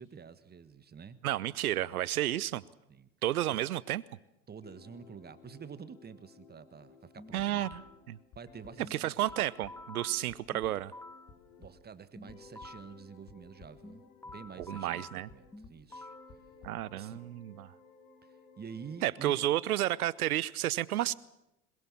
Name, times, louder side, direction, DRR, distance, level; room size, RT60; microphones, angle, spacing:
voice 1, 0.0-1.2 2.9-3.1 3.5-3.6 4.5-7.7 8.3-9.5 11.6-16.1 16.9-17.4 18.2-19.3, right 6 dB, 20° right, 14 dB, 1.5 m, -48 dB
voice 2, 1.2-2.6 3.2-4.0 7.3-7.8 8.1-8.2 8.9-10.9 14.6-15.3 16.6-17.7 19.0-21.1, right 14 dB, 85° right, 22 dB, 0.8 m, -31 dB
sound 1, 4.6-11.8 12.2-15.6 15.9-19.6, left 4 dB, 70° left, 4.2 m, -58 dB
sound 2, 7.2-8.0 8.8-11.4 12.2-13.0 13.8-16.4, left 2 dB, 5° left, 0.9 m, -49 dB
sound 3, 7.4-7.8 8.3-8.7 9.3-9.4 9.6-9.7 10.3-10.4 10.6-10.7 11.3-11.7 12.3-12.7 13.3-13.8 14.3-14.7 15.3-15.4 15.6-15.8 16.3-16.7, left 4 dB, 45° left, 3.6 m, -54 dB
21.5 x 21.5 x 7.3 m, 0.90 s
hypercardioid pair, 85°, 43 cm